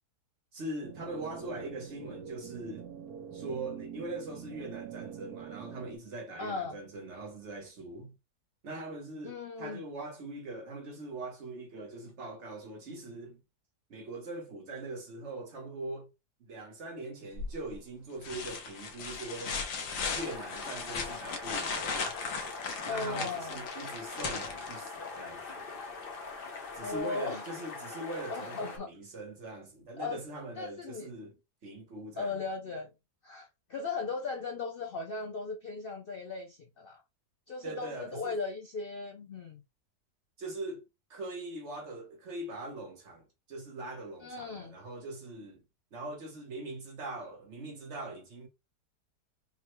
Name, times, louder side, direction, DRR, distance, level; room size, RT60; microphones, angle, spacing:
voice 1, 0.5-2.9 3.3-8.1 8.6-13.4 13.9-16.1 16.4-19.6 20.1-22.2 22.8-25.7 26.7-31.4 31.6-32.4 37.6-38.4 40.4-40.8 41.1-45.6 45.9-48.5, right 2 dB, 50° right, 1.2 m, -42 dB
sound 1, 0.8-6.0, right 8 dB, 70° right, 1.2 m, -45 dB
voice 2, 6.4-6.8 9.2-9.8 22.9-23.6 26.8-27.4 28.3-28.9 30.0-30.2 30.6-31.1 32.2-32.9 33.2-37.0 37.5-39.6 44.2-44.8, left 4 dB, 85° left, 0.4 m, -37 dB
sound 2, 17.4-17.8 18.2-25.2 27.0-27.1, left 5 dB, 60° left, 1.1 m, -37 dB
sound 3, 20.0-28.8, left 4 dB, 40° left, 1.0 m, -43 dB
5.3 x 2.2 x 3.0 m
omnidirectional pair, 1.7 m